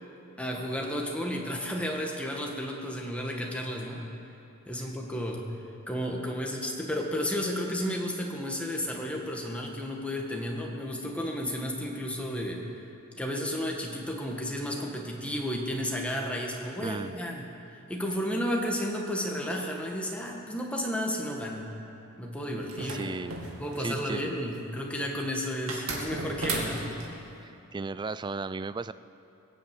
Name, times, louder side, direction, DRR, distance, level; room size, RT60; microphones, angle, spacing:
voice 1, 0.4-4.0 4.7-5.4 5.9-12.6 13.2-17.5 17.9-21.7 22.2-23.1 23.6-26.8, equal, 5° left, 0 dB, 1.8 m, -32 dB
voice 2, 16.8-17.2 22.8-23.4 23.8-24.3 27.4-28.9, right 3 dB, 20° right, 14 dB, 0.3 m, -35 dB
sound 1, 22.7-24.1 25.7-27.1, right 2 dB, 85° right, 2.4 m, -34 dB
21.5 x 7.7 x 8.3 m, 2.7 s
head